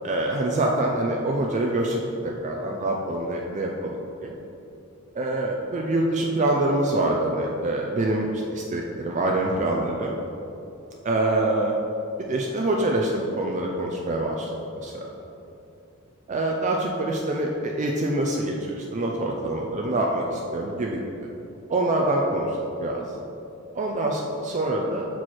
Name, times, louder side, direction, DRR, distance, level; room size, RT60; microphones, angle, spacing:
voice 1, 0.0-4.4 5.2-10.2 11.0-11.7 12.3-14.5 14.8-15.0 16.3-21.3 21.7-23.0 23.7-25.1, right 1 dB, 35° right, 0 dB, 0.4 m, -25 dB
6.2 x 4.6 x 4.2 m, 2.8 s
head